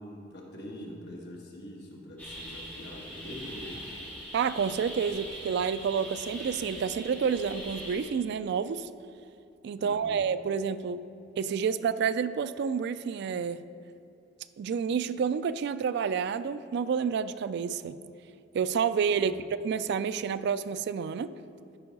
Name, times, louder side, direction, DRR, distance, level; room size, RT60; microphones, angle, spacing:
voice 1, 0.0-3.9 9.8-10.2 19.1-19.5, equal, 60° left, -1 dB, 1.5 m, -44 dB
sound 1, 2.2-8.1, equal, 10° left, 2.1 m, -42 dB
voice 2, 4.3-8.9 9.6-11.0 11.4-13.6 14.6-18.0 18.5-19.3 19.6-21.3, right 6 dB, 60° right, 14 dB, 0.3 m, -29 dB
12.5 x 4.7 x 5.2 m, 2.7 s
head